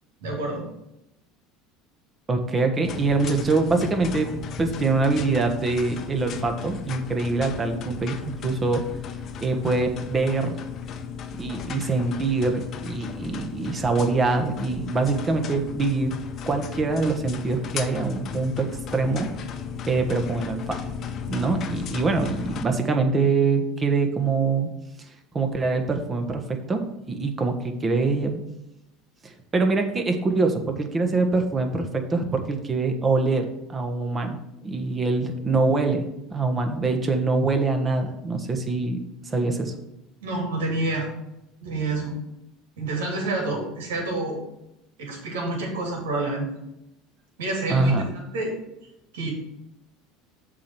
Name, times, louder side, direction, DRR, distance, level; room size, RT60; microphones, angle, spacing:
voice 1, 0.2-0.6 40.2-41.1 41.6-42.2 42.8-44.4 45.0-46.5 47.4-48.5 49.1-49.3, right 2 dB, 85° right, 0 dB, 3.0 m, -28 dB
voice 2, 2.3-4.3 4.6-8.8 9.4-10.6 11.3-16.1 16.5-19.3 19.9-20.8 21.3-24.7 25.3-28.4 29.2-34.4 34.6-36.0 36.3-39.7 47.7-48.0, right 3 dB, 25° right, 5 dB, 1.4 m, -24 dB
sound 1, 2.8-22.6, left 7 dB, 45° left, 0.8 m, -35 dB
7.2 x 4.5 x 6.2 m, 0.87 s
supercardioid pair, 95°, 0 cm